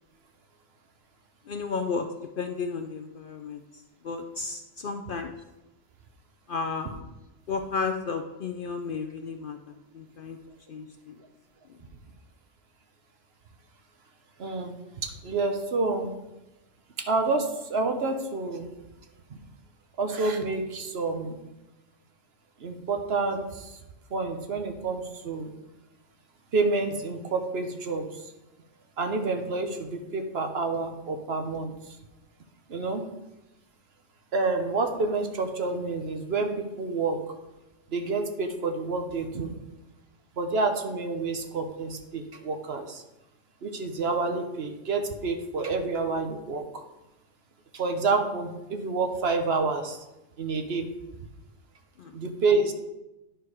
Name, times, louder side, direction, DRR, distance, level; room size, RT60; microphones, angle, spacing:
voice 1, 1.5-2.1 2.4-5.3 6.5-6.9 7.5-10.4 10.7-11.2 11.7-11.8 52.0-52.1, left 5 dB, 55° left, 6 dB, 0.6 m, -33 dB
voice 2, 14.4-14.7 15.0-16.1 17.0-18.7 19.3-19.4 20.0-21.4 22.6-23.8 24.1-25.5 26.5-28.2 29.0-32.0 32.7-33.0 34.3-37.3 37.9-39.5 40.4-43.0 43.6-46.8 47.7-50.0 50.4-50.9 52.1-52.7, right 3 dB, 60° right, 5 dB, 1.1 m, -28 dB
10.5 x 4.5 x 4.8 m, 0.98 s
omnidirectional pair, 1.3 m